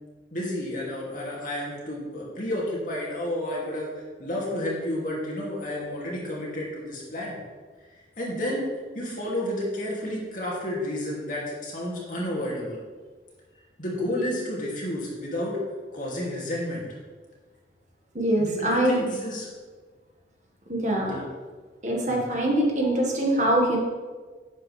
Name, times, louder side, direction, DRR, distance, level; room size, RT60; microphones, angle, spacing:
voice 1, 0.3-3.9 4.2-7.4 8.2-8.7 8.9-12.8 13.8-15.6 15.9-16.9 18.4-19.5 21.0-21.2 22.1-22.2, left 1 dB, 45° left, -4 dB, 2.6 m, -31 dB
voice 2, 18.1-19.0 20.7-21.2 21.8-23.8, right 1 dB, 40° right, -1 dB, 1.7 m, -23 dB
11.0 x 8.4 x 3.4 m, 1.4 s
head